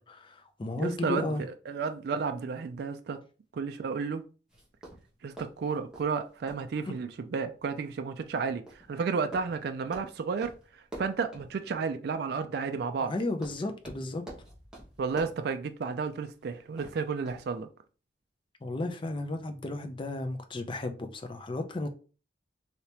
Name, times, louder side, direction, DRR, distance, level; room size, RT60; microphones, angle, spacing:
voice 1, 0.0-1.4 13.0-14.2 18.6-21.9, left 2 dB, 30° left, 0.4 m, -34 dB
voice 2, 0.8-1.3 1.7-3.2 3.5-4.2 5.2-8.6 8.9-10.5 11.0-13.1 15.0-17.7, right 5 dB, 60° right, 0.3 m, -32 dB
sound 1, 4.5-17.6, right 1 dB, 5° right, 1.1 m, -50 dB
3.3 x 2.8 x 2.8 m
head